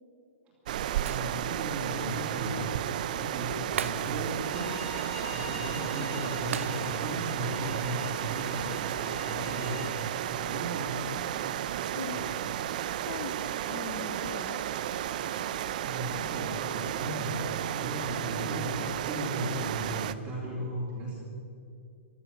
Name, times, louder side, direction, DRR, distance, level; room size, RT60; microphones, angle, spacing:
sound 1, 0.7-20.1, right 11 dB, 35° right, 0.5 m, -33 dB
voice 1, 1.0-2.7 3.1-4.7 5.3-11.1 11.9-12.3 15.8-21.2, right 1 dB, 15° right, -7 dB, 2.8 m, -36 dB
Shatter, 1.1-1.8 2.1-2.2 3.8-4.5 4.8-5.0 6.5-7.2 7.6-7.7, right 8 dB, 75° right, 0.8 m, -38 dB
Bowed string instrument, 4.4-9.9, left 4 dB, 15° left, 2.8 m, -46 dB
voice 2, 11.9-12.5 13.1-14.6, left 8 dB, 35° left, 11 dB, 0.7 m, -41 dB
15.5 x 12.0 x 7.2 m, 2.5 s
hypercardioid pair, 175°, 7 cm